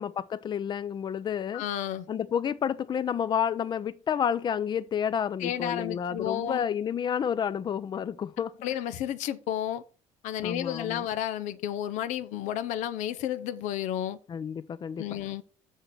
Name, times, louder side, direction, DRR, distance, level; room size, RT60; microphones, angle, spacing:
voice 1, 0.0-1.6 2.1-8.6 10.4-11.0 14.3-15.0, left 8 dB, 35° left, 0.6 m, -30 dB
voice 2, 1.5-2.1 5.4-6.6 8.6-9.8 10.2-14.2 15.0-15.4, left 11 dB, 90° left, 0.9 m, -32 dB
6.6 x 6.5 x 6.0 m
cardioid pair, 115°, 12 cm